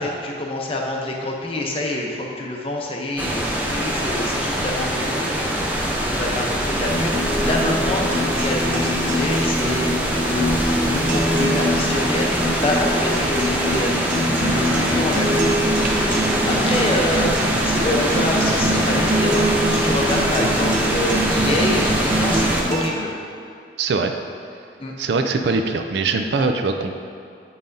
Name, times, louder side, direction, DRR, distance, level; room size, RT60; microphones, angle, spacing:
voice 1, 0.0-23.1 24.8-24.9, left 1 dB, 30° left, -1 dB, 0.7 m, -27 dB
sound 1, 3.2-22.6, right 1 dB, 10° right, 0.5 m, -23 dB
sound 2, 6.9-22.9, right 1 dB, 45° right, 0.7 m, -24 dB
voice 2, 23.8-24.1 25.0-27.0, right 4 dB, 70° right, 6 dB, 0.4 m, -22 dB
8.5 x 5.7 x 2.6 m, 2.4 s
head